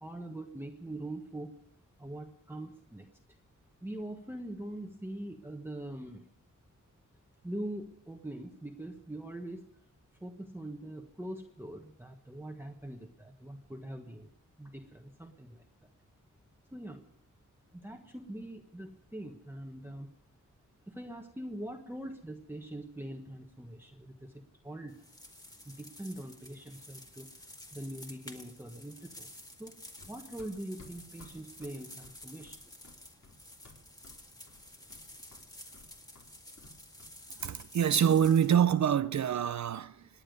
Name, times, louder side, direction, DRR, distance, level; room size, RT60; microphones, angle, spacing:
voice 1, 0.0-1.5 2.0-3.1 3.8-6.3 7.4-9.6 10.2-14.3 14.6-15.6 16.7-17.1 17.7-20.1 20.9-25.0 25.6-27.3 27.7-29.3 29.6-29.7 30.1-32.6, right 1 dB, 5° right, 1.3 m, -43 dB
sound 1, 24.9-38.6, left 1 dB, 10° left, 1.8 m, -51 dB
Run, 30.0-34.2 34.5-35.1 35.3-37.9 38.2-38.4, left 3 dB, 60° left, 4.2 m, -56 dB
voice 2, 37.4-40.1, right 8 dB, 60° right, 0.6 m, -26 dB
27.0 x 10.0 x 5.2 m
wide cardioid pair, 155°, 31 cm